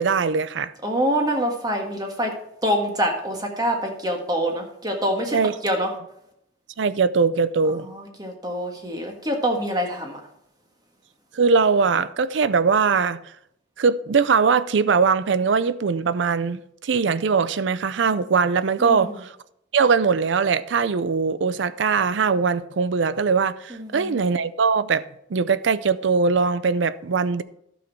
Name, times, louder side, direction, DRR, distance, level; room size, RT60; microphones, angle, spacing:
voice 1, 0.0-0.7 5.3-5.5 6.8-7.9 11.3-13.2 13.8-19.3 19.7-25.0 25.3-27.4, right 5 dB, 80° right, 0.5 m, -21 dB
voice 2, 0.8-2.3 2.6-5.4 5.6-5.9 7.8-10.2 18.8-19.2 23.7-24.2, equal, 20° right, 1.6 m, -25 dB
11.5 x 6.3 x 4.6 m
head